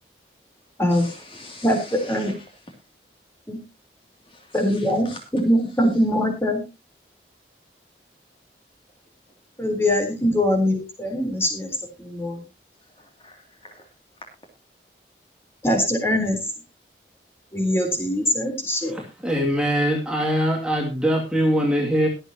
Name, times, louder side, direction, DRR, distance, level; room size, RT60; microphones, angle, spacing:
voice 1, 0.9-2.4 4.3-5.2 12.9-13.9, left 2 dB, 30° left, 3 dB, 2.7 m, -44 dB
voice 2, 1.6-2.3 3.5-3.6 4.5-5.1 5.3-6.6 9.6-12.4 15.6-16.4 17.5-19.0, left 1 dB, 15° left, 3 dB, 3.7 m, -22 dB
voice 3, 18.9-22.1, equal, 5° right, -1 dB, 2.4 m, -22 dB
22.5 x 8.0 x 2.9 m, 0.26 s
head